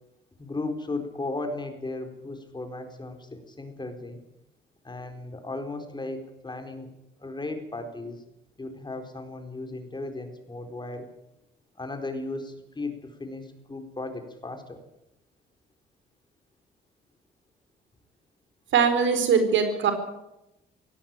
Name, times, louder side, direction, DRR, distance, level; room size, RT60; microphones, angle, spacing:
voice 1, 0.4-4.2 4.8-6.9 7.2-8.2 8.6-11.1 11.8-14.8, left 2 dB, 20° left, 6 dB, 4.3 m, -36 dB
voice 2, 18.7-19.9, right 6 dB, 70° right, 8 dB, 4.5 m, -21 dB
18.0 x 16.5 x 9.0 m, 0.88 s
cardioid pair, 90°, 20 cm